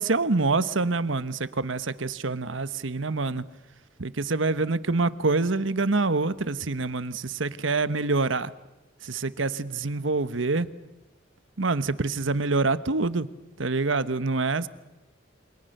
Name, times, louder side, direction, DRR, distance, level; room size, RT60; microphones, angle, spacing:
voice 1, 0.0-3.4 4.0-8.5 9.0-10.7 11.6-13.3 13.6-14.7, right 3 dB, 80° right, 14 dB, 1.2 m, -26 dB
29.0 x 26.0 x 6.7 m, 1.0 s
head